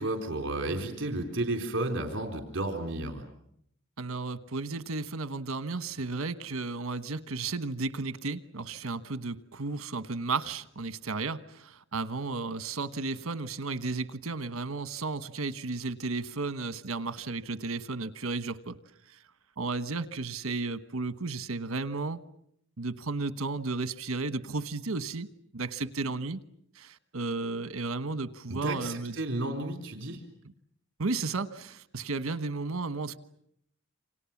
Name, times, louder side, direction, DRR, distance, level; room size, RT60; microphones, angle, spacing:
voice 1, 0.0-3.3 28.5-30.2, right 2 dB, 60° right, 5 dB, 3.9 m, -32 dB
voice 2, 4.0-18.8 19.1-19.2 19.6-22.2 22.8-25.3 25.5-26.4 26.7-29.1 31.0-33.2, right 3 dB, 80° right, 12 dB, 1.2 m, -33 dB
29.0 x 26.5 x 7.3 m, 0.72 s
head